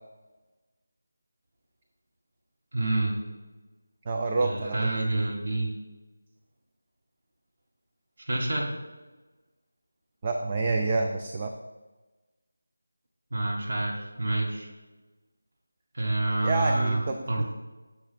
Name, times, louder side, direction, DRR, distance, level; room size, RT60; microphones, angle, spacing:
voice 1, 2.7-3.2 4.4-5.7 8.3-8.7 13.3-14.7 15.9-17.0 17.3-17.4, right 2 dB, 55° right, -1 dB, 1.1 m, -27 dB
voice 2, 4.1-4.9 10.2-11.5 16.4-17.4, right 3 dB, 30° right, 4 dB, 0.4 m, -28 dB
6.5 x 3.1 x 5.6 m, 1.2 s
figure-of-eight pair, 165°, 0 cm